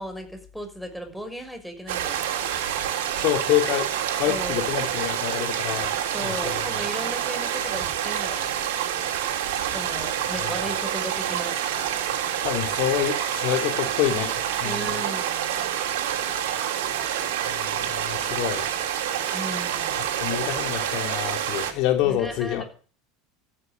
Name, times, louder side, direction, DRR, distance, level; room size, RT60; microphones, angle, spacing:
voice 1, 0.0-2.2 4.3-4.7 6.1-8.6 9.7-11.6 14.6-15.5 19.3-20.1 22.0-22.6, equal, ahead, 6.2 m, -36 dB
sound 1, 1.9-21.7, right 10 dB, 75° right, 3.5 m, -27 dB
voice 2, 3.2-3.9 4.2-5.9 6.2-6.6 10.4-10.5 12.4-14.8 17.0-18.7 19.9-22.6, left 12 dB, 60° left, 3.5 m, -27 dB
15.0 x 9.8 x 9.3 m
hypercardioid pair, 85°, 0 cm